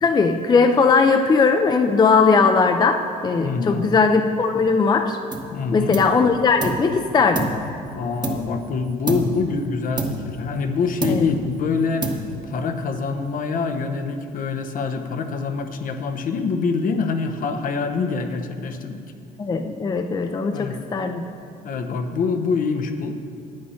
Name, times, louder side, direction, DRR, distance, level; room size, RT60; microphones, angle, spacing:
voice 1, 0.0-5.2 5.7-7.5 11.1-11.4 19.4-21.3, left 4 dB, 25° left, 6 dB, 0.5 m, -19 dB
voice 2, 3.4-3.9 5.5-6.0 7.9-12.1 12.4-19.0 20.5-20.8 21.6-23.1, left 5 dB, 55° left, 7 dB, 0.9 m, -25 dB
sound 1, 5.3-5.6 5.9-6.9 7.3-8.7 9.1-9.5 10.0-10.7 11.0-11.5 12.0-12.6, right 2 dB, 25° right, 1.2 m, -28 dB
9.7 x 8.6 x 5.6 m, 2.4 s
cardioid pair, 110°, 17 cm